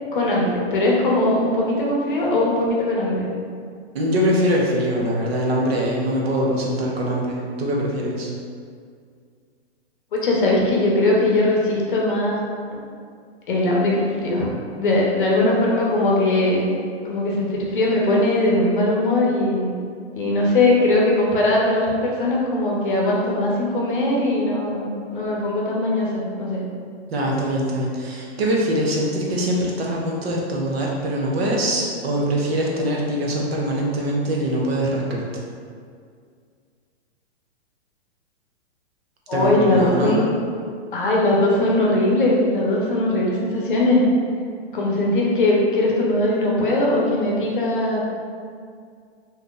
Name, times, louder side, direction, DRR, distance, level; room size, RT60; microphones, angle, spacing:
voice 1, 0.1-3.3 10.1-12.4 13.5-14.5 14.8-16.6 17.0-19.7 20.1-26.6 39.3-40.3 40.9-44.0 44.7-48.0, left 2 dB, 50° left, -3 dB, 0.7 m, -20 dB
voice 2, 3.9-8.3 27.1-35.2 39.3-40.2, equal, 65° right, -2 dB, 0.7 m, -23 dB
2.7 x 2.4 x 3.7 m, 2.2 s
hypercardioid pair, 175°, 34 cm